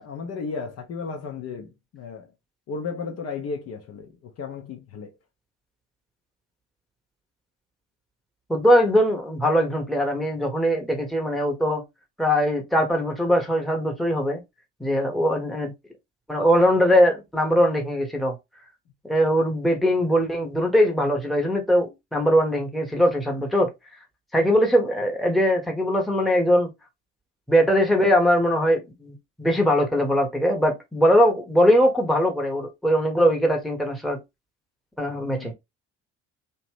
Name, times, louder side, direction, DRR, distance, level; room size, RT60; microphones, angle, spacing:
voice 1, 0.0-2.3 2.7-5.1 35.2-35.5, left 5 dB, 45° left, 0.7 m, -34 dB
voice 2, 8.5-11.8 12.2-14.4 14.8-15.7 16.3-18.3 19.0-23.7 24.3-26.7 27.5-34.2 35.0-35.5, equal, ahead, 0.9 m, -21 dB
2.8 x 2.1 x 3.2 m
figure-of-eight pair, 50°, 37 cm